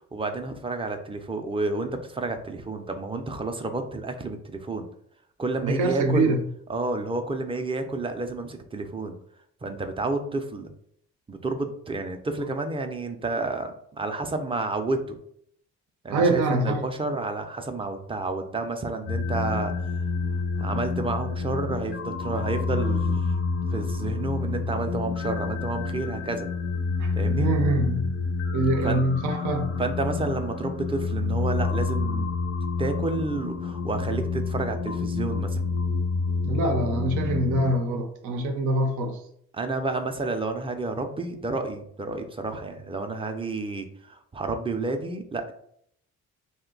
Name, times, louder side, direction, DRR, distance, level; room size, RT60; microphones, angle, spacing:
voice 1, 0.1-4.9 5.4-6.4 6.7-9.2 9.6-10.7 11.3-15.2 16.0-20.0 20.6-23.2 23.7-26.5 27.2-27.5 28.8-29.1 29.8-32.3 32.8-35.6 39.5-45.5, right 3 dB, 20° right, 0.4 m, -30 dB
voice 2, 5.6-6.4 16.1-16.8 27.0-27.1 27.4-28.1 28.5-29.8 36.4-39.1, right 2 dB, 85° right, 0.6 m, -24 dB
sound 1, 19.1-37.7, left 4 dB, 45° left, 0.5 m, -28 dB
2.6 x 2.2 x 3.8 m
cardioid pair, 90°, 30 cm